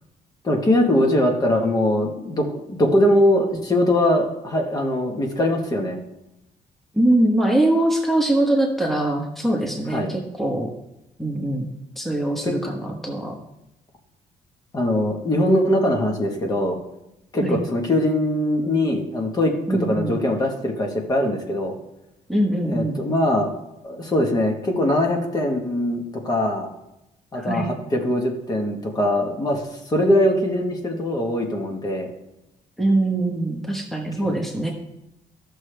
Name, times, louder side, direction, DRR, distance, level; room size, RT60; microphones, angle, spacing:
voice 1, 0.4-6.0 9.9-10.1 12.4-12.5 14.7-16.8 17.3-21.8 22.6-23.5 23.8-26.7 27.3-32.1 34.2-34.4, left 1 dB, 30° left, 2 dB, 1.4 m, -21 dB
voice 2, 6.9-10.7 11.2-11.7 12.0-13.4 17.4-17.6 19.7-20.2 22.3-23.0 27.3-27.7 32.8-34.7, right 1 dB, ahead, -1 dB, 1.2 m, -22 dB
13.5 x 6.4 x 3.4 m, 0.89 s
cardioid pair, 140°, 13 cm